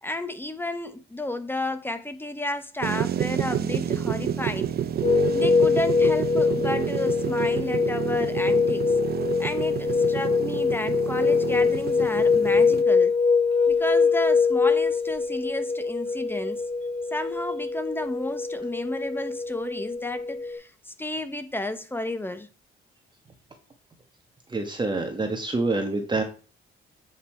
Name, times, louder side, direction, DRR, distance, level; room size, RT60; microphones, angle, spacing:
voice 1, 0.0-4.7 5.3-8.9 9.4-13.2 13.7-16.6 17.1-22.5, left 1 dB, 10° left, 1.1 m, -32 dB
sound 1, 2.8-12.8, right 9 dB, 50° right, 0.6 m, -29 dB
sound 2, 5.0-20.5, left 5 dB, 35° left, 3.4 m, -23 dB
voice 2, 24.5-26.2, right 3 dB, 20° right, 1.5 m, -26 dB
8.3 x 5.5 x 4.5 m
cardioid pair, 90°, 20 cm